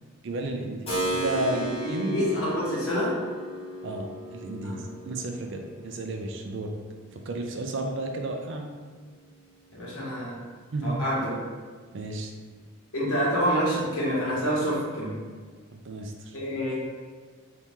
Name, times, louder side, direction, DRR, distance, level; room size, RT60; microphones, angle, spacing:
voice 1, 0.2-1.6 1.9-2.2 3.8-6.7 7.3-8.7 10.7-11.0 11.9-12.3 15.7-16.4, right 2 dB, 55° right, 3 dB, 0.4 m, -32 dB
Keyboard (musical), 0.9-9.5, right 1 dB, 25° left, 1.0 m, -36 dB
voice 2, 1.3-3.2 4.6-4.8 9.7-10.4 10.8-11.4 12.9-15.2 16.3-16.7, equal, 85° left, -6 dB, 1.1 m, -27 dB
2.9 x 2.8 x 3.5 m, 1.5 s
head